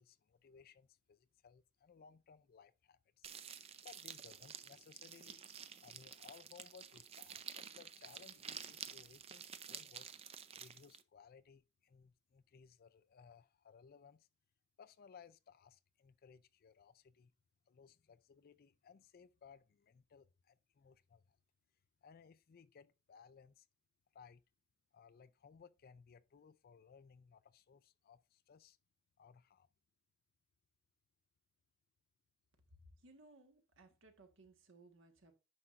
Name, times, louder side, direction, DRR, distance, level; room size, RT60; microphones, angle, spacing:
voice 1, 0.0-3.3 3.8-5.4 5.8-10.1 10.5-14.3 14.8-17.3 17.7-21.4 22.0-23.7 24.1-24.4 24.9-28.8 29.2-29.7, left 6 dB, 45° left, 0.4 m, -62 dB
sound 1, 3.2-11.0, right 8 dB, 30° right, 0.5 m, -51 dB
voice 2, 32.7-35.3, right 2 dB, 65° right, 1.4 m, -63 dB
9.6 x 5.7 x 2.5 m
head